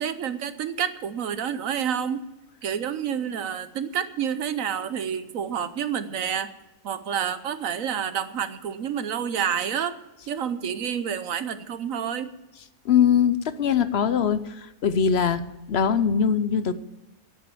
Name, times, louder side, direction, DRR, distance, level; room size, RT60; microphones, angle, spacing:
voice 1, 0.0-2.2 2.6-6.5 6.8-10.0 10.3-12.3, right 8 dB, 65° right, 12 dB, 1.1 m, -29 dB
voice 2, 12.8-16.7, left 7 dB, 55° left, 13 dB, 0.8 m, -22 dB
10.5 x 9.1 x 9.2 m, 1.0 s
omnidirectional pair, 1.6 m